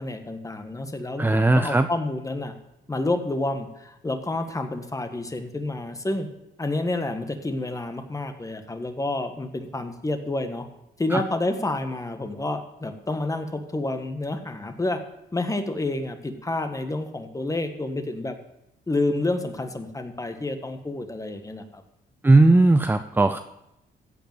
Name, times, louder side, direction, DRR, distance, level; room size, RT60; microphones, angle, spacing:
voice 1, 0.0-2.5 2.9-6.3 6.6-10.6 11.0-15.0 15.3-18.4 18.9-21.8, left 2 dB, 15° left, 7 dB, 1.4 m, -29 dB
voice 2, 1.2-1.9 11.1-11.2 22.2-23.4, right 2 dB, 10° right, 9 dB, 0.5 m, -17 dB
15.5 x 5.2 x 7.2 m, 0.86 s
cardioid pair, 90°, 20 cm